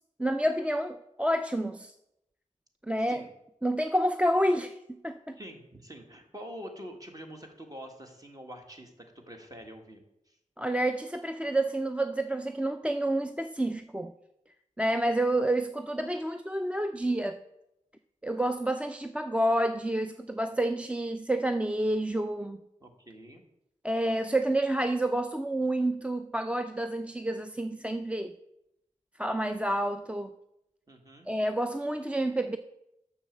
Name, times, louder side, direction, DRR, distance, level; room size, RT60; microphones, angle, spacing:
voice 1, 0.2-1.9 2.8-3.3 3.6-5.4 10.6-14.1 14.8-17.4 18.2-22.6 23.8-28.3 29.2-30.3 31.3-32.6, right 1 dB, 10° right, 8 dB, 0.4 m, -29 dB
voice 2, 5.4-8.9 9.3-10.0 10.3-10.4 22.8-23.4 30.9-31.3, equal, 30° right, 3 dB, 1.7 m, -45 dB
7.0 x 6.4 x 7.3 m, 0.84 s
wide cardioid pair, 80°, 13 cm